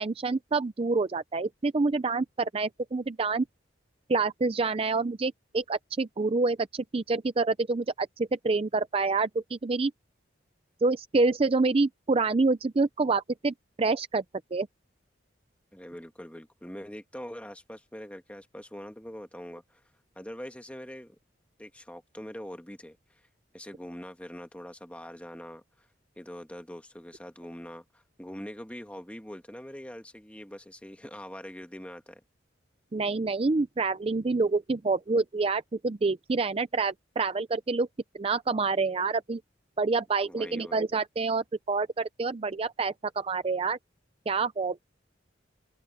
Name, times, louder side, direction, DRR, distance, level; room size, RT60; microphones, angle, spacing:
voice 1, 0.0-3.4 4.1-9.9 10.8-14.2 14.5-14.7 32.9-37.9 38.1-39.4 39.8-43.8 44.3-44.8, right 3 dB, 30° right, 0.4 m, -27 dB
voice 2, 15.7-19.8 20.1-21.1 21.6-23.2 23.5-25.9 26.2-32.2 40.2-40.9, equal, 5° left, 1.4 m, -43 dB
open air
head